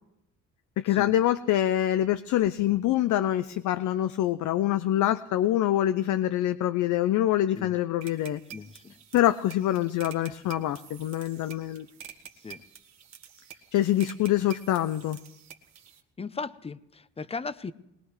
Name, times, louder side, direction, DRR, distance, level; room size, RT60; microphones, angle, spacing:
voice 1, 0.8-8.4 9.1-11.9 13.7-15.2, left 13 dB, 75° left, 12 dB, 0.6 m, -25 dB
sound 1, 8.0-16.0, right 9 dB, 60° right, 1.6 m, -48 dB
voice 2, 8.5-8.9 12.4-12.6 16.2-17.7, left 4 dB, 20° left, 15 dB, 0.7 m, -37 dB
21.0 x 19.0 x 3.2 m, 0.85 s
cardioid pair, 90°, 30 cm